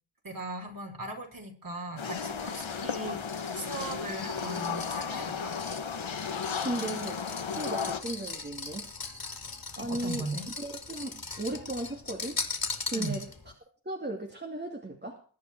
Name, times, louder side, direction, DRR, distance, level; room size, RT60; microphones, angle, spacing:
voice 1, 0.2-3.2 3.5-5.5 9.8-10.5 12.9-13.2, right 2 dB, 45° right, 2 dB, 5.5 m, -38 dB
sound 1, 2.0-8.0, left 6 dB, 75° left, 1.9 m, -34 dB
sound 2, 2.2-13.5, left 4 dB, 45° left, 3.0 m, -40 dB
voice 2, 6.6-7.2 7.6-8.9 9.8-10.2 10.6-12.4 12.9-13.3 13.8-15.2, right 1 dB, 20° right, 1 dB, 2.4 m, -36 dB
21.5 x 9.6 x 4.6 m, 0.41 s
wide cardioid pair, 85°, 47 cm